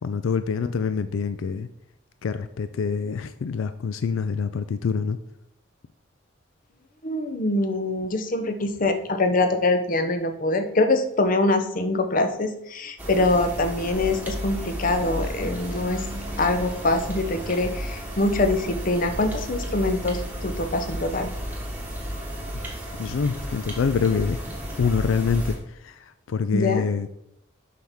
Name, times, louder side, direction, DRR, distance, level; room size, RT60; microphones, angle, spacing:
voice 1, 0.0-1.7 2.2-5.2 22.5-24.4 24.8-27.1, left 5 dB, 85° left, 12 dB, 0.4 m, -26 dB
voice 2, 7.0-16.0 16.4-21.3 26.5-26.9, left 2 dB, 45° left, 8 dB, 0.7 m, -24 dB
sound 1, 13.0-25.6, equal, 10° right, 1.3 m, -33 dB
7.5 x 5.7 x 3.6 m, 0.77 s
head